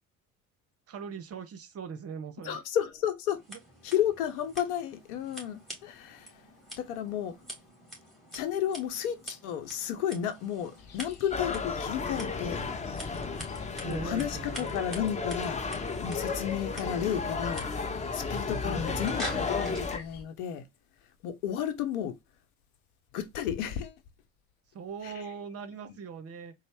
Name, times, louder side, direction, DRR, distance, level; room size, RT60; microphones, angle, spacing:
voice 1, 0.9-2.6 3.5-3.6 13.8-14.8 24.7-26.5, right 6 dB, 35° right, 0.7 m, -40 dB
voice 2, 2.4-3.4 3.8-6.4 6.8-7.3 8.3-12.7 13.8-15.6 16.0-17.7 18.1-20.6 21.2-22.1 23.1-24.0 25.0-25.1, left 9 dB, 75° left, 0.9 m, -32 dB
Scissors, 3.3-19.9, equal, ahead, 1.9 m, -46 dB
sound 1, 10.8-20.2, left 6 dB, 50° left, 1.0 m, -50 dB
sound 2, 11.3-20.0, left 4 dB, 15° left, 0.6 m, -33 dB
4.0 x 2.0 x 3.4 m
hypercardioid pair, 70°, 44 cm